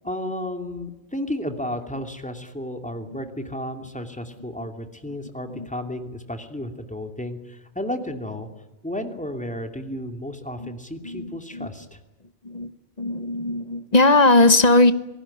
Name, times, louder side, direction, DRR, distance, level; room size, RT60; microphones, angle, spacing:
voice 1, 0.0-8.5 8.8-12.0, left 1 dB, 5° left, 2.6 m, -33 dB
voice 2, 11.0-11.7 12.4-12.7 13.0-14.9, left 2 dB, 40° left, 1.2 m, -19 dB
27.0 x 19.0 x 10.0 m
omnidirectional pair, 1.1 m